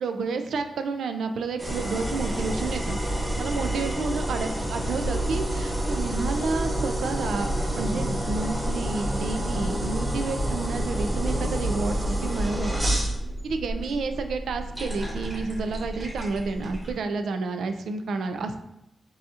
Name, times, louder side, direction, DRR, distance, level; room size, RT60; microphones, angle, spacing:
voice 1, 0.0-3.0 3.4-13.0 13.4-18.6, right 4 dB, 85° right, 7 dB, 0.4 m, -30 dB
sound 1, 1.6-16.9, right 1 dB, 10° right, 1.1 m, -29 dB
6.8 x 2.7 x 2.4 m, 0.86 s
wide cardioid pair, 145°, 0 cm